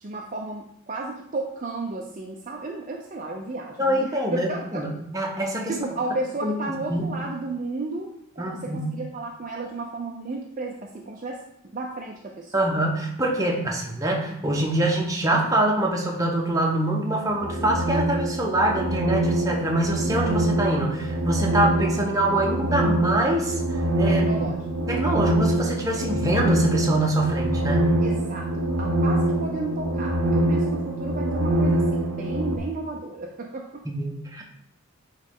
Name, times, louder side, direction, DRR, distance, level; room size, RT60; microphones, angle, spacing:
voice 1, 0.0-4.8 5.7-8.1 8.4-11.4 11.7-12.6 24.1-24.9 28.0-33.8, right 2 dB, 35° right, 0 dB, 0.5 m, -33 dB
voice 2, 3.8-5.7 6.4-6.5 6.9-7.0 8.4-8.8 12.5-23.6 24.0-24.5 24.9-27.9 33.8-34.4, right 1 dB, 15° right, 0 dB, 0.9 m, -24 dB
sound 1, 17.3-32.6, right 1 dB, 80° right, 0.7 m, -24 dB
8.9 x 3.2 x 3.6 m, 0.75 s
head